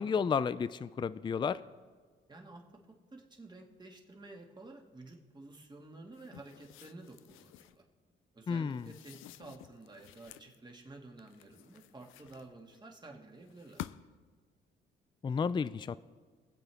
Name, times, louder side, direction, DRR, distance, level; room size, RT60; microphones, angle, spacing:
voice 1, 0.0-1.6 8.5-8.8 15.2-16.0, left 6 dB, 25° left, 15 dB, 0.4 m, -32 dB
voice 2, 2.3-7.8 8.3-13.8, right 2 dB, 20° right, 1 dB, 2.0 m, -52 dB
sound 1, 6.1-7.8 8.7-10.5 11.2-12.8 13.5-14.3, left 14 dB, 85° left, 0.4 m, -51 dB
22.5 x 7.9 x 3.5 m, 1.5 s
cardioid pair, 90°, 20 cm